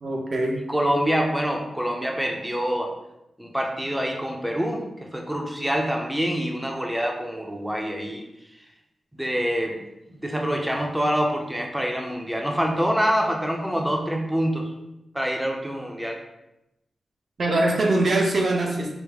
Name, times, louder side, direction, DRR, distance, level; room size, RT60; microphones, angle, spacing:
voice 1, 0.0-0.6 17.4-18.9, right 2 dB, 50° right, 1 dB, 0.8 m, -22 dB
voice 2, 0.7-2.9 3.4-8.2 9.2-9.8 10.1-14.7 15.1-16.2, equal, 5° right, 1 dB, 0.7 m, -26 dB
5.1 x 2.1 x 4.8 m, 0.88 s
wide cardioid pair, 110°, 0 cm